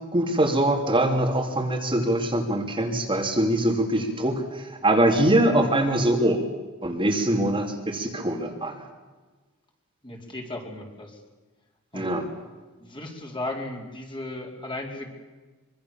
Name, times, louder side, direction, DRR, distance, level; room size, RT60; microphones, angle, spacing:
voice 1, 0.1-6.4 6.8-8.9 11.9-12.2, right 1 dB, 25° right, 2 dB, 2.9 m, -23 dB
voice 2, 10.0-11.2 11.9-12.1 12.8-15.1, left 2 dB, 20° left, 1 dB, 4.4 m, -35 dB
25.0 x 25.0 x 7.2 m, 1.3 s
head